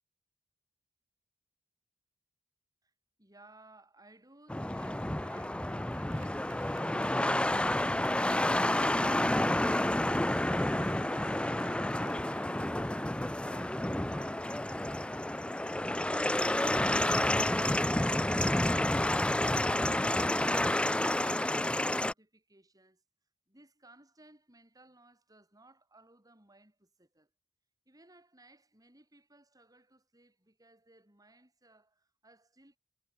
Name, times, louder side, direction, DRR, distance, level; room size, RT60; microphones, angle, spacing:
voice 1, 3.2-12.7 23.5-27.3 27.8-32.8, right 2 dB, 20° right, 6.7 m, -61 dB
sound 1, 4.5-22.1, left 1 dB, 5° left, 0.4 m, -30 dB
Applause, 5.9-15.2, right 6 dB, 75° right, 7.5 m, -58 dB
head